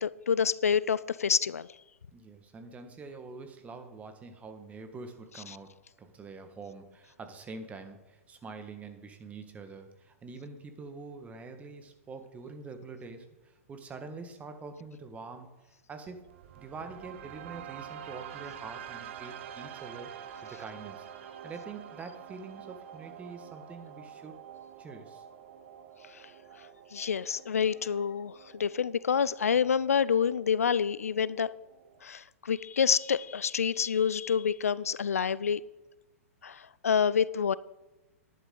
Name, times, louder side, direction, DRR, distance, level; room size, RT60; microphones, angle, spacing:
voice 1, 0.0-1.7 26.1-26.2 26.9-31.5 32.0-35.6 36.4-37.5, left 7 dB, 80° left, 19 dB, 0.4 m, -27 dB
voice 2, 2.1-5.7 6.0-15.5 15.9-16.3 16.6-21.1 21.4-24.3 24.8-25.2, right 4 dB, 20° right, 7 dB, 1.5 m, -45 dB
sound 1, 16.1-32.1, right 9 dB, 55° right, 0.9 m, -47 dB
11.0 x 11.0 x 3.8 m, 1.1 s
hypercardioid pair, 115°, 8 cm